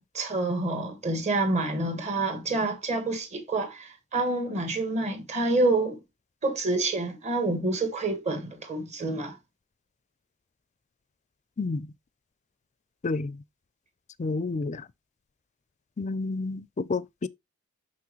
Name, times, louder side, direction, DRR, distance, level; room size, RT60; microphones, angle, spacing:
voice 1, 0.0-6.0 6.4-9.4, right 2 dB, 35° right, 1.6 m, -28 dB
voice 2, 13.0-13.4 14.2-14.8 16.0-17.3, left 3 dB, 35° left, 0.4 m, -30 dB
6.1 x 6.0 x 3.0 m
head